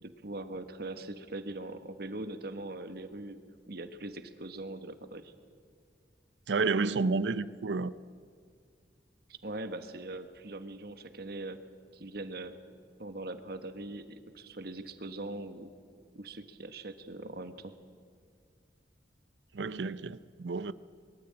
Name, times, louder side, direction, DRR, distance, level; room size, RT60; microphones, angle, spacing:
voice 1, 0.0-5.3 9.3-11.6 11.9-12.5 13.0-15.7 16.1-17.7, right 2 dB, 60° right, 1.3 m, -41 dB
voice 2, 6.5-7.9 19.5-20.7, right 4 dB, 85° right, 0.6 m, -30 dB
22.0 x 13.5 x 8.7 m
head